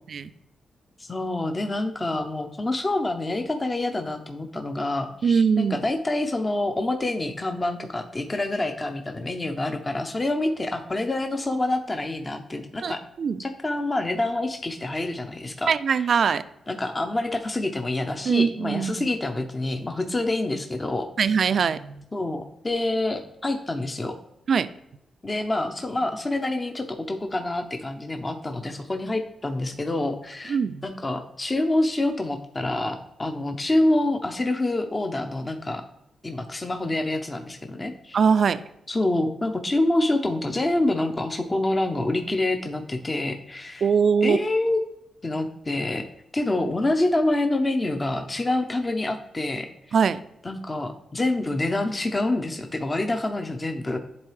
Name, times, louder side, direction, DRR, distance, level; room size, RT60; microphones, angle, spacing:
voice 1, 1.0-13.0 13.4-16.1 16.7-21.1 22.1-24.2 25.2-30.6 30.8-35.8 36.2-38.2 38.9-43.9 44.2-44.8 45.2-46.1 46.3-50.0 50.4-54.0, left 2 dB, 30° left, 5 dB, 0.6 m, -27 dB
voice 2, 5.2-5.8 12.8-13.4 15.7-16.4 18.3-19.1 21.2-22.0 24.5-24.7 30.5-30.8 38.1-38.6 43.8-44.5 49.9-50.2, right 6 dB, 65° right, 14 dB, 0.3 m, -22 dB
9.7 x 3.8 x 3.2 m, 0.82 s
cardioid pair, 65°, 0 cm